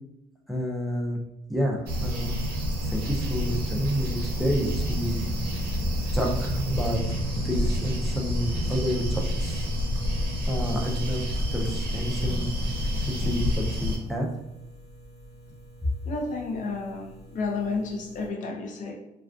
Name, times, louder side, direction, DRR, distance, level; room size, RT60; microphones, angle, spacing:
voice 1, 0.5-1.2 1.5-2.4 2.8-5.3 6.1-7.0 7.4-9.7 10.5-11.2 11.5-12.5 13.1-14.3, equal, ahead, -1 dB, 0.4 m, -29 dB
sound 1, 1.9-14.0, equal, 65° right, 0.7 m, -28 dB
sound 2, 8.4-18.3, right 1 dB, 75° left, 1.2 m, -49 dB
voice 2, 16.1-18.9, left 3 dB, 50° left, 1 dB, 0.6 m, -31 dB
2.3 x 2.3 x 2.4 m, 0.87 s
cardioid pair, 110°, 17 cm